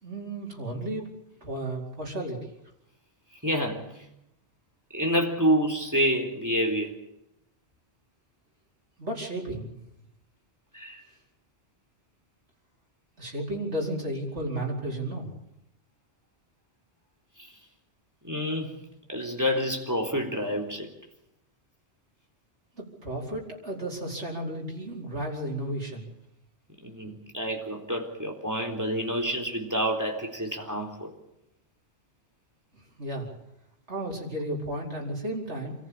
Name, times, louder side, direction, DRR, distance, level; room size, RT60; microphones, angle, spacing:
voice 1, 0.0-1.1 1.4-2.4 9.0-9.7 13.2-15.3 22.8-26.1 33.0-33.3 33.9-35.7, right 1 dB, 90° right, -2 dB, 5.0 m, -33 dB
voice 2, 3.4-3.9 4.9-6.9 10.7-11.0 18.2-18.8 19.1-20.9 26.8-31.1, equal, 15° right, 2 dB, 3.8 m, -28 dB
27.5 x 14.5 x 8.4 m, 0.84 s
omnidirectional pair, 1.1 m